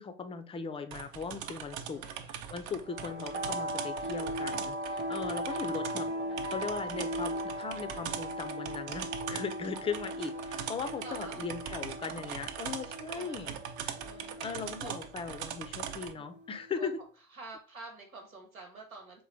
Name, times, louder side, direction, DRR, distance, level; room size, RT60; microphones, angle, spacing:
voice 1, 0.0-13.6 13.8-14.0 14.4-16.9, left 5 dB, 15° left, 9 dB, 0.4 m, -39 dB
sound 1, 0.9-16.1, right 8 dB, 45° right, 0.6 m, -41 dB
voice 2, 1.7-2.3 5.3-5.4 11.0-11.5 13.1-13.6 14.0-15.0 16.1-16.4 16.8-16.9 17.3-19.2, right 3 dB, 90° right, 2 dB, 1.2 m, -48 dB
sound 2, 2.8-16.9, equal, 25° right, 1.0 m, -39 dB
3.8 x 3.1 x 3.2 m, 0.41 s
hypercardioid pair, 80°, 40 cm